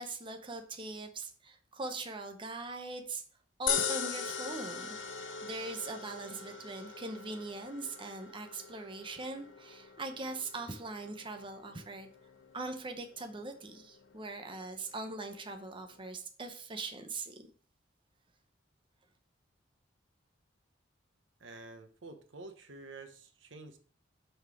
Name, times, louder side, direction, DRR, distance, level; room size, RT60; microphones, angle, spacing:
voice 1, 0.0-3.2 3.6-5.0 5.4-12.1 12.5-17.5, right 3 dB, 25° right, 5 dB, 0.8 m, -41 dB
sound 1, 3.7-16.0, left 7 dB, 80° left, 0.8 m, -41 dB
voice 2, 21.4-23.8, right 3 dB, 80° right, 7 dB, 1.0 m, -49 dB
5.8 x 5.6 x 4.7 m, 0.44 s
head